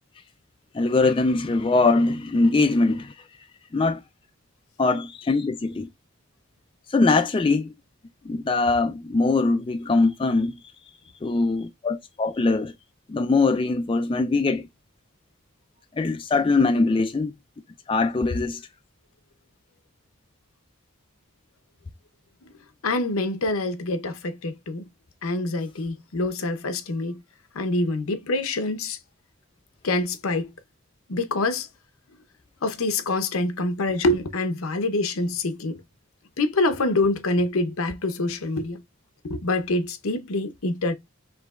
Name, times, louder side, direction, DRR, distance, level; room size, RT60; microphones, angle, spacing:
voice 1, 0.7-3.1 3.7-4.0 4.8-5.9 6.9-7.7 8.3-10.5 11.2-12.7 13.1-14.7 16.0-17.3 17.9-18.6, left 3 dB, 25° left, 0.3 m, -22 dB
voice 2, 22.8-24.9 25.2-27.2 27.5-29.0 29.8-30.5 31.1-31.7 32.6-35.8 36.4-38.8 39.2-40.9, left 2 dB, 80° left, 0.7 m, -26 dB
4.8 x 3.3 x 2.4 m
head